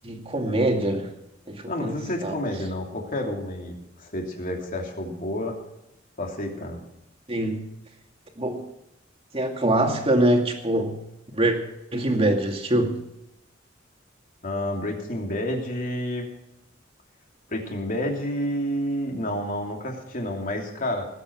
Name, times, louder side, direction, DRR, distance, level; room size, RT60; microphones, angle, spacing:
voice 1, 0.0-1.1 1.5-2.3 7.3-7.6 8.4-8.6 9.3-11.0 11.3-11.6 11.9-13.0, right 1 dB, 30° right, 3 dB, 2.4 m, -24 dB
voice 2, 1.7-5.6 6.2-6.8 14.4-16.3 17.5-21.1, left 1 dB, 45° left, 1 dB, 3.0 m, -29 dB
19.5 x 8.6 x 6.0 m, 0.88 s
head